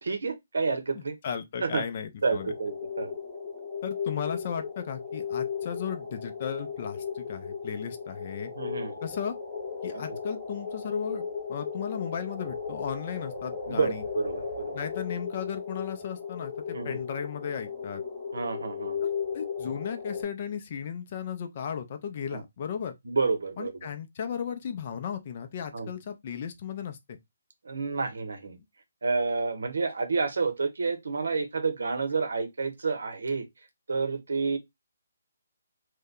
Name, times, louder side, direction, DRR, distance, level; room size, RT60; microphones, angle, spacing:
voice 1, 0.0-1.2 1.6-1.8 2.2-3.1 8.6-8.9 9.9-10.0 13.7-14.7 16.7-17.0 18.3-19.0 22.3-22.4 23.1-23.7 25.7-25.9 27.6-28.6 29.0-33.5 33.9-34.6, right 4 dB, 80° right, 0.9 m, -29 dB
voice 2, 0.9-2.5 3.8-8.5 9.0-9.4 9.8-14.0 14.7-18.0 19.0-22.9 23.6-27.2, left 7 dB, 30° left, 0.4 m, -35 dB
sound 1, 2.4-20.2, left 6 dB, 15° left, 0.8 m, -36 dB
2.7 x 2.1 x 3.6 m
hypercardioid pair, 170°, 0 cm